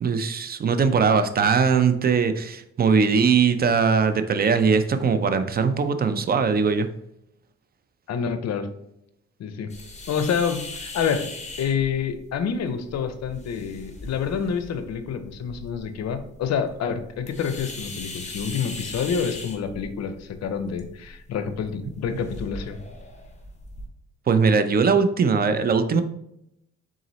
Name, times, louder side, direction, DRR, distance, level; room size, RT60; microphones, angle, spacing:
voice 1, 0.0-6.9 24.3-26.0, right 5 dB, 30° right, 10 dB, 0.4 m, -20 dB
voice 2, 8.1-8.7 9.4-9.7 10.1-11.3 11.6-22.8, left 7 dB, 60° left, 9 dB, 0.6 m, -28 dB
sound 1, 9.7-23.9, left 2 dB, 25° left, 0.8 m, -40 dB
3.9 x 3.8 x 3.1 m, 0.80 s
cardioid pair, 90°, 30 cm